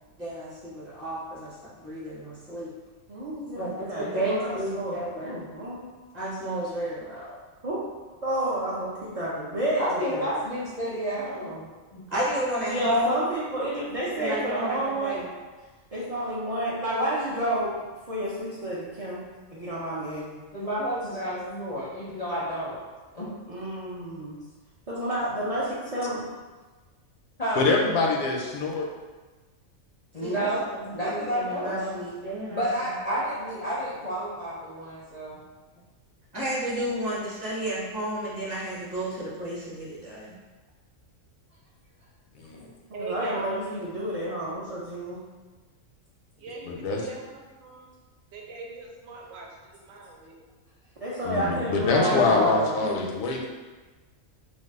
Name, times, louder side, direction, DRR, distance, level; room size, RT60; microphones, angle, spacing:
voice 1, 0.2-2.7 3.6-5.4 6.1-7.4 12.1-13.2 14.2-15.3 30.2-32.6 36.3-40.4 52.0-52.6 52.8-53.1, equal, 35° right, -8 dB, 0.8 m, -31 dB
voice 2, 3.1-5.9 7.6-7.8 8.2-10.3 12.7-15.2 15.9-17.8 18.1-19.2 19.5-20.4 23.5-24.4 24.9-26.2 43.0-45.2 51.0-52.8, right 1 dB, 60° right, -8 dB, 0.3 m, -30 dB
voice 3, 9.8-11.6 11.9-12.0 20.5-22.8 23.1-23.3 27.4-27.6 30.1-32.0 32.5-35.4 42.6-42.7, equal, 45° left, -9 dB, 0.5 m, -30 dB
voice 4, 27.6-28.8 42.4-42.7 46.7-47.0 51.2-53.5, left 3 dB, 85° left, 1 dB, 1.0 m, -25 dB
voice 5, 42.9-43.5 46.4-47.9 48.3-49.5 49.7-50.3, right 3 dB, 75° right, 0 dB, 0.9 m, -40 dB
2.6 x 2.3 x 3.5 m, 1.3 s
omnidirectional pair, 1.4 m